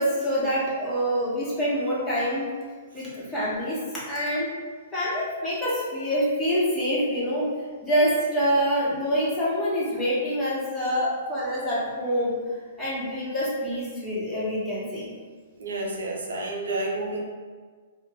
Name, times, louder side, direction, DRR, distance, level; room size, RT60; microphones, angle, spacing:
voice 1, 0.0-2.5 2.9-3.8 4.1-4.5 4.9-7.5 7.8-12.3 12.8-15.1, equal, 10° left, -9 dB, 1.0 m, -26 dB
voice 2, 15.6-17.2, right 2 dB, 80° right, -1 dB, 0.5 m, -30 dB
2.3 x 2.0 x 3.5 m, 1.5 s
hypercardioid pair, 135°, 0 cm